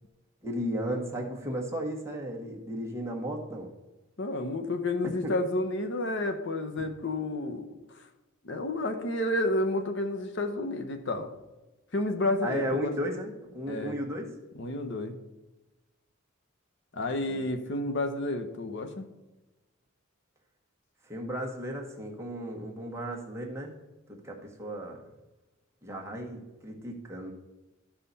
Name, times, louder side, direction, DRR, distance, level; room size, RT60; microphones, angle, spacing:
voice 1, 0.4-3.7 5.2-5.3 12.4-14.3 17.2-17.4 21.0-23.7 24.1-25.0 25.8-27.3, equal, 15° right, 0 dB, 1.3 m, -35 dB
voice 2, 4.2-7.7 7.9-8.0 8.4-11.3 11.9-12.9 13.7-14.0 14.5-15.2 16.9-19.0, left 2 dB, 60° left, 6 dB, 0.9 m, -30 dB
13.0 x 5.7 x 4.1 m, 1.0 s
head